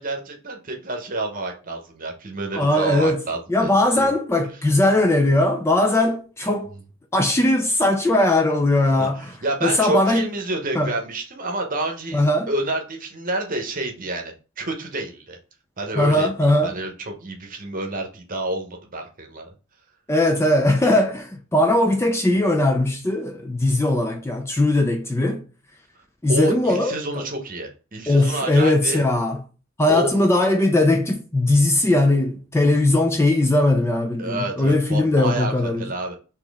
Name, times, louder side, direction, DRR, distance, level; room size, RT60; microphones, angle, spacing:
voice 1, 0.0-4.1 9.0-15.4 15.8-19.5 26.3-29.1 29.9-30.2 34.2-36.1, right 2 dB, 40° right, 0.9 m, -29 dB
voice 2, 2.5-3.2 3.5-6.7 7.1-9.3 9.6-10.3 10.8-10.9 12.1-12.5 16.0-16.7 20.1-25.4 26.2-27.2 28.1-29.4 29.8-35.9, left 1 dB, 10° left, 0.3 m, -19 dB
4.1 x 2.8 x 3.4 m
head